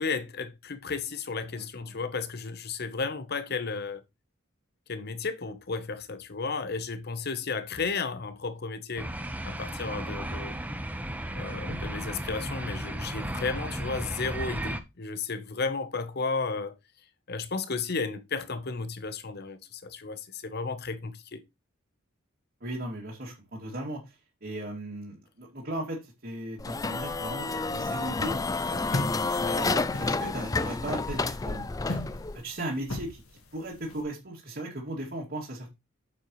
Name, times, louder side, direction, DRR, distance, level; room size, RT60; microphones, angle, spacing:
voice 1, 0.0-4.0 4.9-9.1 9.4-10.6 11.3-16.7 17.3-21.4 29.6-29.9, left 4 dB, 50° left, 0.9 m, -33 dB
voice 2, 1.5-2.0 11.5-11.8 22.6-28.3 28.7-31.7 32.4-35.7, right 1 dB, 50° right, 2.5 m, -37 dB
sound 1, 9.0-14.8, right 1 dB, 10° right, 0.8 m, -34 dB
sound 2, 26.6-32.4, left 3 dB, 15° left, 0.4 m, -30 dB
sound 3, 28.9-34.0, left 2 dB, 85° left, 1.6 m, -37 dB
8.9 x 7.4 x 3.1 m
head